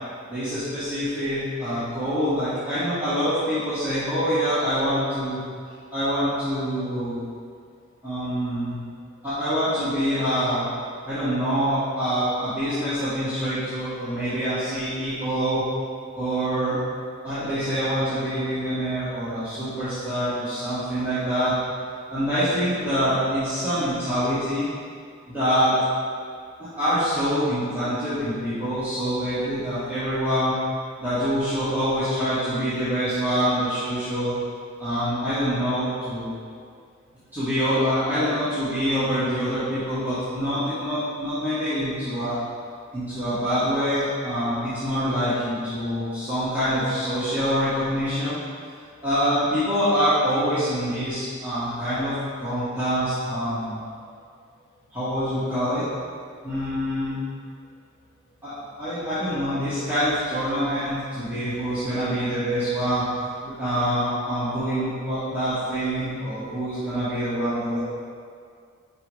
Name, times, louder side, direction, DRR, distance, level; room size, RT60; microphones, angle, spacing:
voice 1, 0.3-5.4 5.9-7.2 8.0-8.8 9.2-10.7 11.0-15.6 16.1-16.8 17.2-21.5 22.1-24.7 25.3-25.7 26.6-30.5 31.0-34.3 34.8-36.3 37.3-42.4 42.9-48.4 49.0-53.8 54.9-55.8 56.4-57.2 58.4-63.0 63.4-67.8, equal, 10° right, -16 dB, 1.6 m, -25 dB
5.3 x 4.8 x 4.8 m, 2.2 s
head